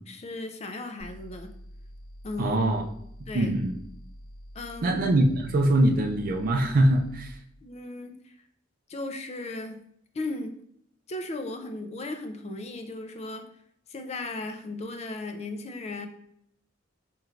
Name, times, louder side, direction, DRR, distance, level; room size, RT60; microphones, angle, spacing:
voice 1, 0.1-1.5 2.2-2.6 3.3-3.5 4.5-4.9 7.6-8.3 8.9-9.8 10.1-10.6 11.1-13.4 13.9-16.1, left 2 dB, 35° left, 5 dB, 0.4 m, -36 dB
sound 1, 1.0-7.4, equal, 25° right, 0.7 m, -46 dB
voice 2, 2.4-2.8 3.3-3.7 4.8-7.4, right 1 dB, 45° right, 4 dB, 0.4 m, -23 dB
4.4 x 3.1 x 2.4 m, 0.70 s
head